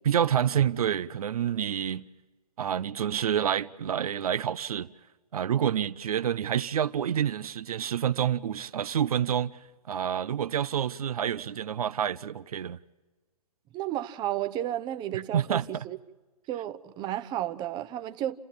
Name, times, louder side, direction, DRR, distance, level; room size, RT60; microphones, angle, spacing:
voice 1, 0.0-2.1 2.6-4.9 5.3-9.5 9.9-12.8 15.1-15.8, right 9 dB, 70° right, 0.7 m, -28 dB
voice 2, 13.7-16.0 16.5-18.4, right 12 dB, 20° right, 0.8 m, -32 dB
29.0 x 14.5 x 8.6 m
hypercardioid pair, 130°, 20 cm